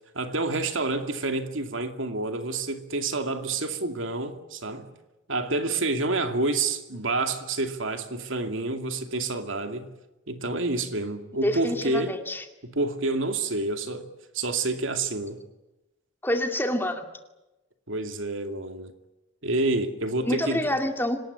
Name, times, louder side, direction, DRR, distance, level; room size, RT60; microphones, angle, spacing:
voice 1, 0.1-4.9 5.3-9.9 10.3-12.2 12.6-14.1 14.3-15.4 17.9-18.9 19.4-20.7, right 2 dB, 80° right, 2.4 m, -28 dB
voice 2, 11.4-12.4 16.2-17.1 20.2-21.2, left 1 dB, 10° left, 2.2 m, -27 dB
26.0 x 19.5 x 9.8 m
head